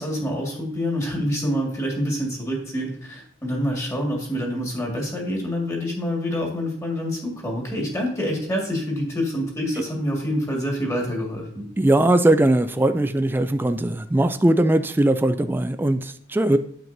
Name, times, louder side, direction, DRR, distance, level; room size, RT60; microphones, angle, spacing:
voice 1, 0.0-11.7, equal, 15° left, 0 dB, 1.8 m, -26 dB
voice 2, 11.8-16.6, right 1 dB, 10° right, 9 dB, 0.3 m, -20 dB
9.1 x 7.4 x 2.6 m, 0.62 s
head